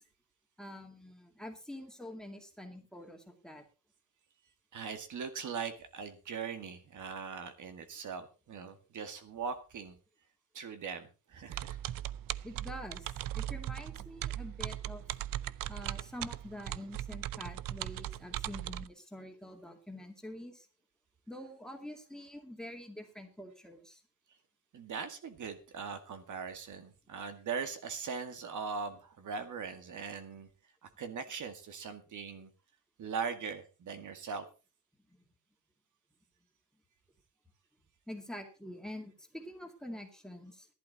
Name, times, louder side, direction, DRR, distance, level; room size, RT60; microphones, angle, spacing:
voice 1, 0.6-3.6 12.4-13.1 13.3-15.0 15.7-20.7 21.3-24.0 38.1-40.7, left 1 dB, ahead, 4 dB, 2.3 m, -46 dB
voice 2, 4.7-10.0 10.5-11.8 24.7-30.5 30.8-32.5 33.0-34.5, right 6 dB, 60° right, 8 dB, 2.0 m, -40 dB
sound 1, 11.5-18.9, right 13 dB, 80° right, 0.6 m, -39 dB
15.0 x 11.5 x 4.1 m, 0.32 s
wide cardioid pair, 170°, 34 cm